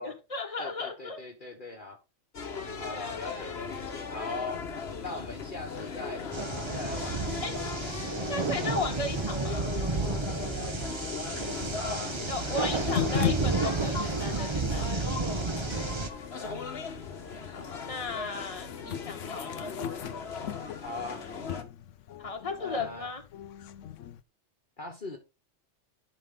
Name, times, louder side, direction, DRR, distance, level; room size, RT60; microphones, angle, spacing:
voice 1, 0.0-1.2 2.9-3.6 5.1-5.2 7.4-7.6 8.2-9.7 12.3-15.1 17.5-19.7 22.2-23.2, left 3 dB, 30° left, 1.5 m, -36 dB
voice 2, 0.6-2.0 2.8-4.6 5.0-6.2 6.7-7.8 10.4-11.1 11.7-12.2 16.4-16.6 20.8-21.3 22.6-23.1 24.8-25.2, left 3 dB, 45° left, 1.4 m, -40 dB
sound 1, 2.3-21.6, left 5 dB, 60° left, 1.4 m, -38 dB
sound 2, 6.3-16.1, right 3 dB, 25° right, 0.9 m, -32 dB
sound 3, 12.9-24.2, left 10 dB, 90° left, 1.0 m, -38 dB
11.0 x 5.2 x 3.8 m
omnidirectional pair, 1.2 m